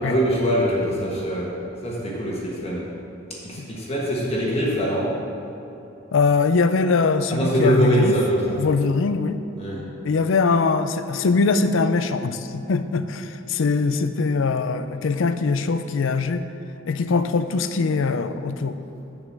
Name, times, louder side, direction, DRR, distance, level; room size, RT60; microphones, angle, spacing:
voice 1, 0.0-1.6 1.8-2.9 3.3-5.1 7.3-8.6 9.6-9.8, right 1 dB, 30° left, -4 dB, 1.3 m, -23 dB
voice 2, 6.1-8.1 8.6-9.4 10.0-16.5 16.9-18.8, left 4 dB, 75° left, 10 dB, 0.5 m, -22 dB
7.2 x 5.2 x 7.3 m, 2.7 s
head